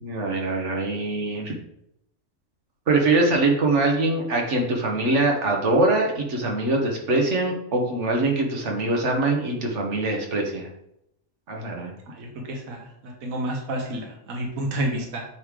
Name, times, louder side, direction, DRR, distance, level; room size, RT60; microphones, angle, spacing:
voice 1, 0.0-1.5 2.9-10.7 11.5-11.9, right 2 dB, 60° right, 1 dB, 1.4 m, -23 dB
voice 2, 12.1-15.2, right 1 dB, 75° right, 0 dB, 1.5 m, -30 dB
9.0 x 3.3 x 3.6 m, 0.79 s
omnidirectional pair, 1.4 m